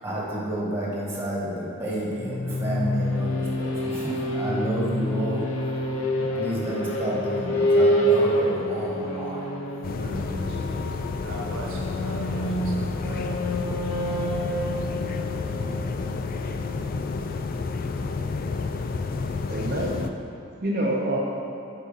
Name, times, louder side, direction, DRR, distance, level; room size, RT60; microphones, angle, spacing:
voice 1, 0.0-5.7 6.1-9.5, right 1 dB, 10° right, -5 dB, 1.6 m, -30 dB
sound 1, 2.1-16.8, equal, 85° left, 0.8 m, -27 dB
sound 2, 9.8-20.1, left 4 dB, 45° left, 0.4 m, -30 dB
voice 2, 10.0-10.9 19.5-20.0 20.6-21.2, right 1 dB, 45° right, -4 dB, 0.7 m, -28 dB
voice 3, 11.2-13.4, right 1 dB, 85° right, -1 dB, 1.1 m, -39 dB
8.2 x 4.1 x 5.6 m, 3.0 s
head